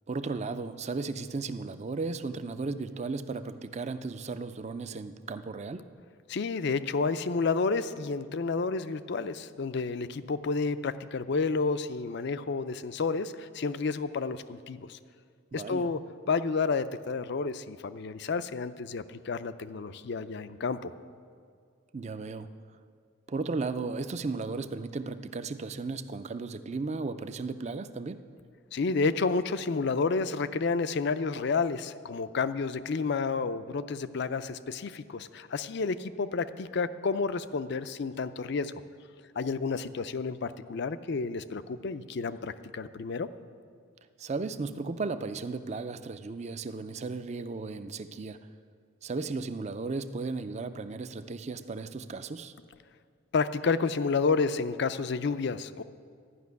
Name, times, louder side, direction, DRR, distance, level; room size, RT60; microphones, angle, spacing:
voice 1, 0.1-5.9 15.5-15.9 21.9-22.5 23.3-28.2 44.2-48.5 49.0-52.5, right 3 dB, 35° right, 11 dB, 0.4 m, -35 dB
voice 2, 6.3-15.0 15.5-16.0 16.3-20.9 28.7-38.7 39.4-43.3 53.3-55.8, left 4 dB, 55° left, 13 dB, 0.5 m, -30 dB
12.5 x 6.0 x 9.5 m, 2.2 s
head